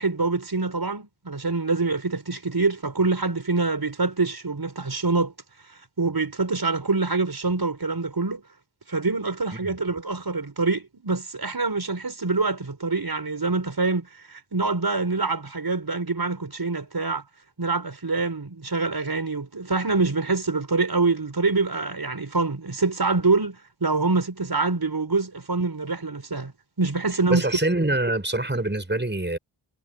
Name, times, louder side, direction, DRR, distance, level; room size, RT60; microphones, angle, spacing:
voice 1, 0.0-5.3 6.0-8.4 8.9-17.2 17.6-26.5 26.8-27.4, right 3 dB, 50° right, 6.1 m, -25 dB
voice 2, 27.3-29.4, right 2 dB, 20° right, 5.9 m, -25 dB
wide cardioid pair, 60°, 48 cm